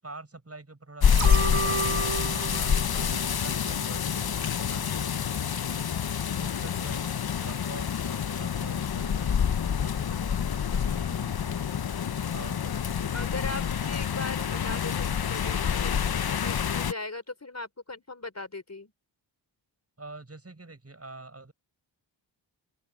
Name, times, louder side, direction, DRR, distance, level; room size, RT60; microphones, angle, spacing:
voice 1, 0.0-7.1 7.4-11.7 12.3-13.4 20.0-21.5, right 2 dB, 30° right, 7.7 m, -46 dB
sound 1, 1.0-16.9, left 8 dB, 55° left, 0.8 m, -27 dB
sound 2, 1.1-4.2 4.5-4.6, right 3 dB, 75° right, 2.3 m, -33 dB
voice 2, 13.1-18.9, left 3 dB, 35° left, 4.8 m, -38 dB
open air
wide cardioid pair, 70°, 46 cm